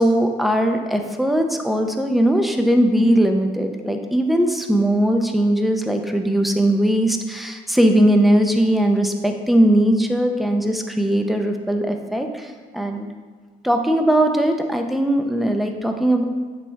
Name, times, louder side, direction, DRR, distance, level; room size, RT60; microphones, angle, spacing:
voice 1, 0.0-13.1 13.6-16.2, right 1 dB, ahead, 4 dB, 0.6 m, -19 dB
8.5 x 3.3 x 4.6 m, 1.4 s
cardioid pair, 90°, 18 cm